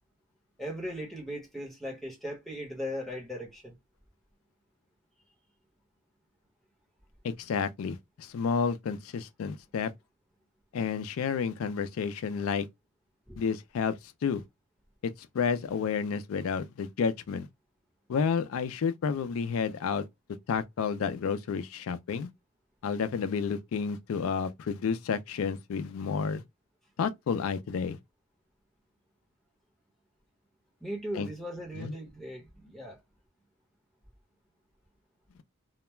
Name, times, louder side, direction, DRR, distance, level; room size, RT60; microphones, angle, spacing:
voice 1, 0.6-3.8 13.3-13.4 30.8-33.0, equal, ahead, 0.9 m, -38 dB
voice 2, 7.2-9.9 10.7-12.7 13.4-14.4 15.0-17.5 18.1-20.1 20.5-22.3 22.8-26.4 27.0-28.0 31.1-31.3 31.8-31.9, left 6 dB, 80° left, 0.3 m, -30 dB
2.3 x 2.1 x 2.9 m
head